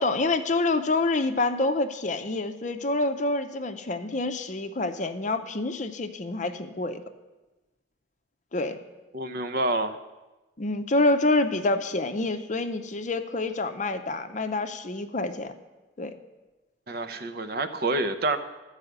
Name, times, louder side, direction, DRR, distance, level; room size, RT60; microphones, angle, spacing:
voice 1, 0.0-7.0 8.5-8.8 10.6-15.5 16.0-16.1, left 2 dB, 40° left, 8 dB, 0.6 m, -27 dB
voice 2, 9.1-10.0 16.9-18.4, right 2 dB, 50° right, 9 dB, 0.7 m, -27 dB
13.5 x 4.9 x 7.9 m, 1.1 s
head